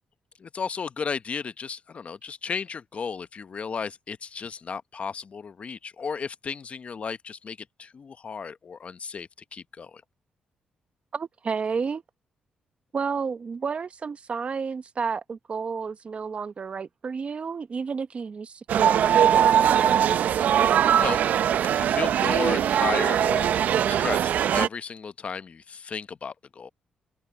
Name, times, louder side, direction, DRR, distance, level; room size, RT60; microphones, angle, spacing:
voice 1, 0.4-10.0 21.0-21.2 21.7-23.5 23.8-26.7, left 6 dB, 50° left, 0.9 m, -34 dB
voice 2, 11.1-12.0 12.9-20.0, right 5 dB, 45° right, 1.2 m, -31 dB
sound 1, 18.7-24.7, right 9 dB, 75° right, 0.6 m, -21 dB
open air
supercardioid pair, 65°, 3 cm